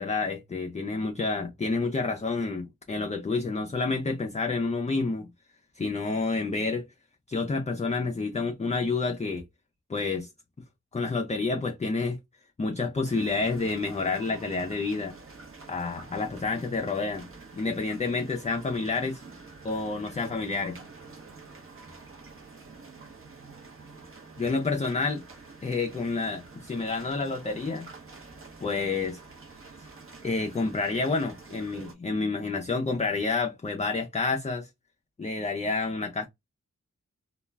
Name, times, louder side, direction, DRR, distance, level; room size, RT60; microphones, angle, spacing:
voice 1, 0.0-5.3 5.8-6.9 7.3-9.4 9.9-10.3 10.9-12.2 12.6-15.1 15.7-17.3 17.5-19.2 19.6-20.8 24.4-25.2 25.6-27.9 28.6-29.2 30.2-34.7 35.2-36.3, left 3 dB, 20° left, 0.4 m, -29 dB
sound 1, 13.0-31.9, right 4 dB, 40° right, 0.8 m, -48 dB
2.3 x 2.1 x 3.2 m
wide cardioid pair, 65°, 32 cm